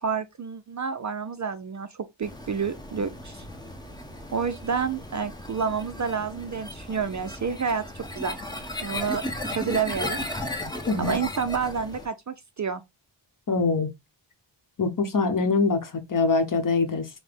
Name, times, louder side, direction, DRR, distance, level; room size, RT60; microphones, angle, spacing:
voice 1, 0.0-3.5 4.3-8.4 8.8-9.2 9.5-10.2 11.0-12.8, right 6 dB, 40° right, 0.4 m, -29 dB
sound 1, 2.2-12.1, left 1 dB, 10° left, 0.8 m, -36 dB
voice 2, 13.5-13.9 14.8-17.1, left 4 dB, 40° left, 0.9 m, -24 dB
5.8 x 2.1 x 3.4 m
wide cardioid pair, 95°, 48 cm